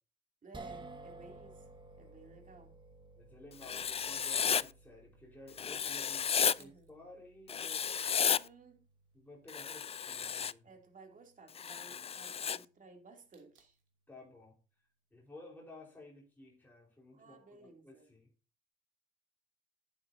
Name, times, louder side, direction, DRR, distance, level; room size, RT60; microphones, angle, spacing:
voice 1, 0.4-1.7 2.0-2.8 6.5-6.9 8.3-8.8 10.6-13.8 17.1-18.1, right 3 dB, 40° right, 3.0 m, -57 dB
sound 1, 0.5-12.9, right 2 dB, 25° right, 1.6 m, -56 dB
voice 2, 3.2-7.8 9.1-10.7 14.1-14.5 15.1-18.3, left 2 dB, 10° left, 4.5 m, -54 dB
sound 2, 3.5-4.1 6.0-6.1 6.3-6.9 7.7-8.2 8.9-10.4 13.3-13.9, right 8 dB, 75° right, 2.9 m, -66 dB
Writing, 3.6-4.6 5.6-6.6 7.5-8.4 9.5-10.5 11.6-12.6, left 7 dB, 30° left, 0.4 m, -33 dB
11.5 x 8.7 x 2.8 m
cardioid pair, 90°, 20 cm